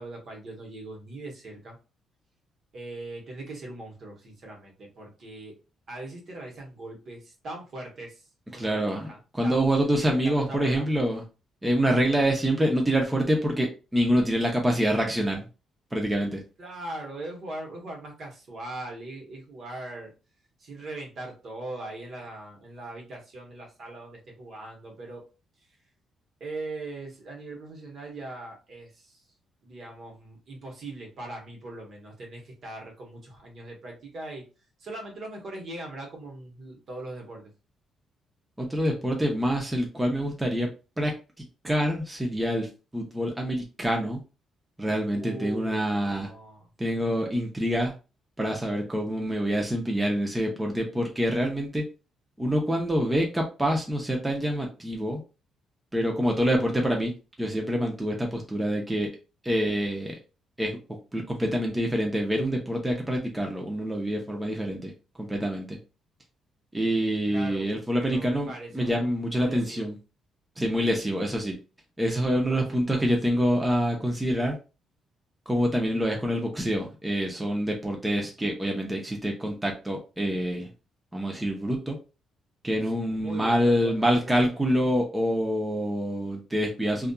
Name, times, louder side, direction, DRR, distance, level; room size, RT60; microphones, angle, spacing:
voice 1, 0.0-1.8 2.7-5.6 5.9-9.6 9.9-10.8 16.6-20.1 20.6-25.2 26.4-29.2 29.6-34.4 34.8-37.5 45.1-46.6 67.3-69.9 72.3-73.5 83.0-84.6, right 2 dB, 55° right, 1 dB, 1.0 m, -40 dB
voice 2, 8.5-9.1 9.3-11.2 11.6-15.4 15.9-16.4 38.6-40.7 41.0-41.1 41.6-44.2 44.8-46.3 46.8-47.9 48.4-51.8 52.4-55.2 55.9-57.1 57.4-59.1 59.4-60.2 60.6-60.8 61.1-64.9 65.2-65.8 66.7-70.0 70.6-71.5 72.0-74.6 75.5-80.7 81.1-82.0 82.6-87.1, equal, 10° right, 0 dB, 0.6 m, -26 dB
2.6 x 2.3 x 2.2 m, 0.31 s
cardioid pair, 90°, 0 cm